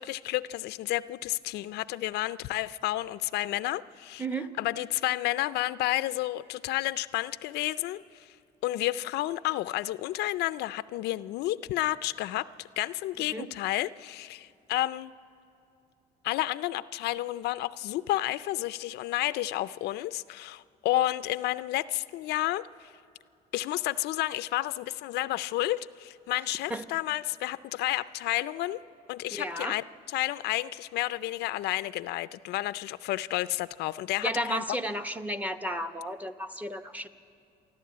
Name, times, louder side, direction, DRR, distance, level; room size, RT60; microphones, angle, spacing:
voice 1, 0.0-4.2 4.6-8.3 8.6-15.1 16.2-22.9 23.5-28.8 29.1-29.8 30.1-34.6, left 16 dB, 80° left, 15 dB, 0.5 m, -31 dB
voice 2, 4.2-4.5 13.3-13.5 26.7-26.9 29.3-29.8 34.2-37.1, right 1 dB, 10° right, 8 dB, 0.9 m, -33 dB
28.5 x 11.5 x 8.5 m, 2.7 s
cardioid pair, 110°, 17 cm